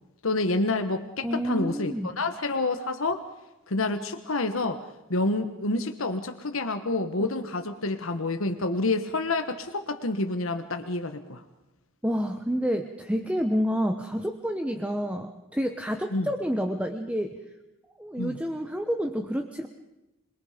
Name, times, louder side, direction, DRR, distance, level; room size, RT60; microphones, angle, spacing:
voice 1, 0.2-3.2 3.7-4.8 5.1-11.4 16.1-16.3 18.2-18.4, left 2 dB, 80° left, 7 dB, 1.3 m, -28 dB
voice 2, 1.2-2.1 12.0-17.4 18.0-19.7, equal, 5° right, 6 dB, 0.9 m, -29 dB
27.0 x 22.0 x 5.1 m, 1.0 s
head